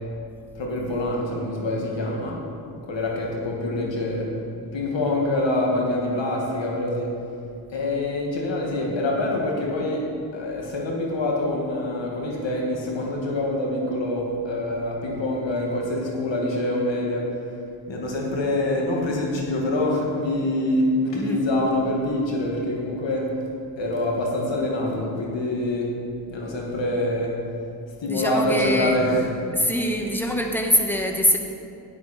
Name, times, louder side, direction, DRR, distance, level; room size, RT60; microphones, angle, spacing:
voice 1, 0.5-2.4 2.8-4.3 4.7-7.1 7.7-10.0 10.3-17.2 17.9-23.4 23.8-25.9 26.3-27.3 28.0-29.3, left 1 dB, 70° left, -2 dB, 2.4 m, -25 dB
voice 2, 28.1-29.3 29.5-31.4, equal, 5° left, 2 dB, 1.6 m, -24 dB
11.0 x 9.4 x 4.5 m, 2.5 s
supercardioid pair, 45°, 47 cm